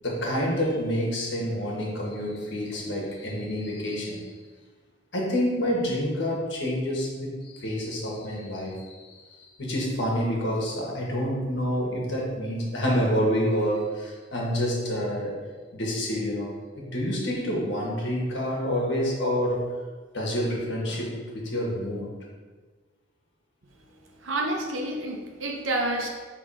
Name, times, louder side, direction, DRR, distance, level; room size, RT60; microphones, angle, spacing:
voice 1, 0.0-4.2 5.1-15.4 15.7-19.6 20.1-22.1, equal, 65° left, -3 dB, 1.6 m, -28 dB
voice 2, 24.2-26.1, right 1 dB, 80° right, 1 dB, 0.9 m, -29 dB
5.7 x 3.5 x 4.9 m, 1.4 s
head